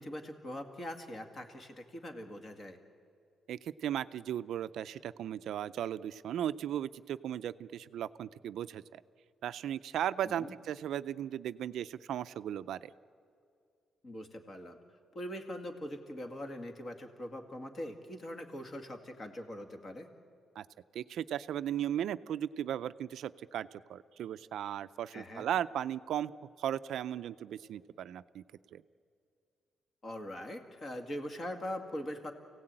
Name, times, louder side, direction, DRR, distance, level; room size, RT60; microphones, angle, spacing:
voice 1, 0.0-2.8 10.2-10.6 14.0-14.8 15.1-20.1 25.1-25.5 30.0-32.3, left 1 dB, 30° left, 5 dB, 2.0 m, -42 dB
voice 2, 3.5-9.0 9.4-12.9 20.6-20.7 20.9-26.3 26.6-28.4 28.7-28.8, right 10 dB, 70° right, 13 dB, 0.5 m, -36 dB
29.0 x 17.0 x 8.9 m, 2.3 s
cardioid pair, 170°, 0 cm